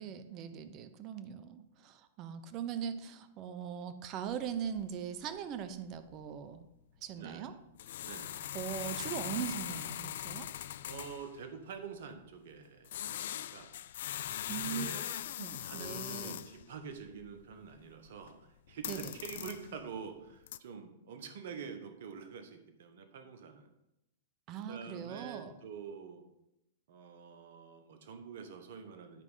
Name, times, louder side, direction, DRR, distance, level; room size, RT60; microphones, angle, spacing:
voice 1, 0.0-6.7 7.0-7.5 8.5-10.5 14.5-14.9 15.4-16.4 18.9-19.1 24.5-25.6, right 8 dB, 40° right, 11 dB, 0.9 m, -40 dB
sound 1, 4.3-4.4 4.6-4.9 5.2-5.4 5.7-5.8 6.1-6.3 7.7-11.4 12.8-16.6 17.0-18.4 18.7-19.8 20.3-20.6, left 11 dB, 70° left, 0.4 m, -41 dB
voice 2, 7.1-7.5 8.0-8.5 10.8-13.7 14.5-15.2 15.6-18.3 18.7-23.7 24.7-26.2 26.9-29.2, right 6 dB, 65° right, 7 dB, 1.4 m, -47 dB
10.0 x 4.8 x 5.6 m, 0.87 s
hypercardioid pair, 120°, 0 cm